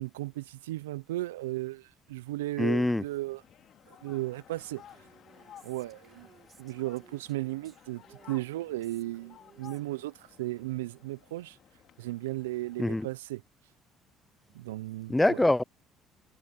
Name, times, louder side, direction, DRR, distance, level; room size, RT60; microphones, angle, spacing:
voice 1, 0.0-3.4 3.9-4.8 5.6-6.3 6.6-11.6 12.0-13.4 14.5-15.4, right 18 dB, 85° right, 0.6 m, -35 dB
voice 2, 2.6-3.0 12.8-13.1 15.1-15.6, left 1 dB, 10° left, 0.6 m, -24 dB
sound 1, 3.0-13.1, left 10 dB, 55° left, 2.5 m, -56 dB
Female speech woman speaking, 4.9-10.3, right 8 dB, 45° right, 4.3 m, -60 dB
hypercardioid pair, 60°, 0 cm